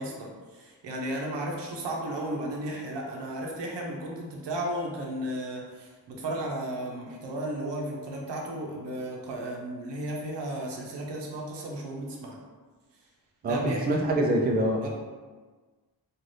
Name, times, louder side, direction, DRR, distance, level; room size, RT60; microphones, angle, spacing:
voice 1, 0.0-12.4 13.4-13.8 14.8-14.9, right 1 dB, 90° right, -1 dB, 0.7 m, -34 dB
voice 2, 13.4-14.9, right 1 dB, 25° right, 0 dB, 0.3 m, -25 dB
2.6 x 2.4 x 3.2 m, 1.4 s
wide cardioid pair, 105°, 41 cm